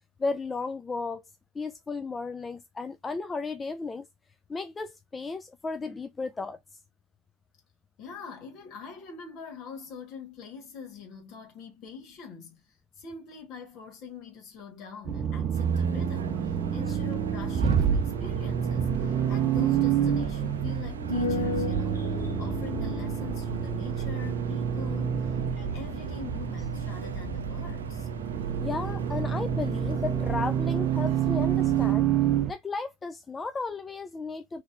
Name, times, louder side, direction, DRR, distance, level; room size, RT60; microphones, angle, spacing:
voice 1, 0.2-1.2 1.5-4.1 4.5-6.6 16.9-17.0 28.6-32.1 32.5-34.6, left 4 dB, 20° left, 0.4 m, -34 dB
voice 2, 8.0-22.0 22.4-28.1, left 6 dB, 45° left, 1.5 m, -43 dB
Accelerating revving vroom, 15.1-32.5, right 8 dB, 35° right, 0.5 m, -28 dB
sound 1, 15.5-31.9, right 4 dB, 85° right, 0.4 m, -40 dB
sound 2, 17.8-28.1 28.4-28.5, left 2 dB, 85° left, 0.9 m, -39 dB
3.9 x 3.1 x 2.5 m
hypercardioid pair, 90°, 0 cm